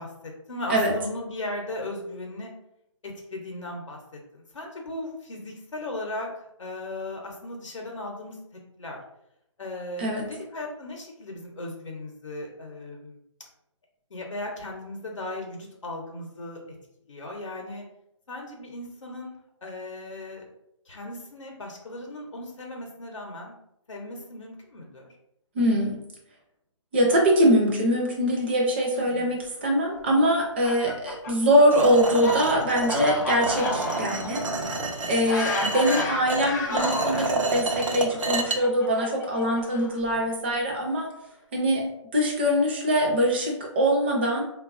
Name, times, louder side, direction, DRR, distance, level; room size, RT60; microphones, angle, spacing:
voice 1, 0.0-2.5 3.0-8.4 8.8-9.0 9.6-13.2 14.1-16.6 17.1-17.8 18.3-19.3 19.6-20.4 20.9-23.6 23.9-25.2 28.9-29.4 34.0-34.7 40.1-40.3, left 1 dB, 70° left, 0 dB, 0.7 m, -37 dB
voice 2, 25.5-26.0 26.9-34.4 35.0-41.1 41.5-41.9 42.1-44.4, equal, 20° right, 0 dB, 0.4 m, -23 dB
Fowl, 30.4-37.3 38.1-40.1, left 2 dB, 35° left, 0.5 m, -32 dB
sound 1, 31.7-38.6, right 3 dB, 85° right, 0.5 m, -29 dB
2.9 x 2.2 x 2.4 m, 0.81 s
figure-of-eight pair, 150°, 16 cm